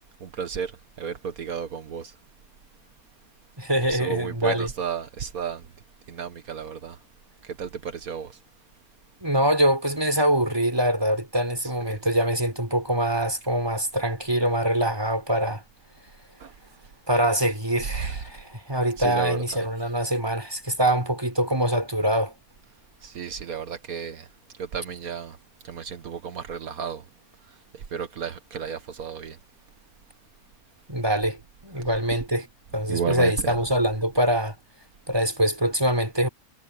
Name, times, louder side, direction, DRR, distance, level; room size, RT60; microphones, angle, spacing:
voice 1, 0.2-0.7 1.0-2.1 3.9-5.7 6.1-7.0 7.4-8.4 16.4-16.5 19.0-19.6 23.0-24.3 24.6-25.4 25.6-27.0 27.9-29.4 32.9-33.5, right 7 dB, 75° right, 1.7 m, -32 dB
voice 2, 3.6-4.7 9.2-15.6 17.1-22.3 30.9-32.5 32.7-34.5 35.1-36.3, right 1 dB, 15° right, 4.6 m, -24 dB
omnidirectional pair, 1.5 m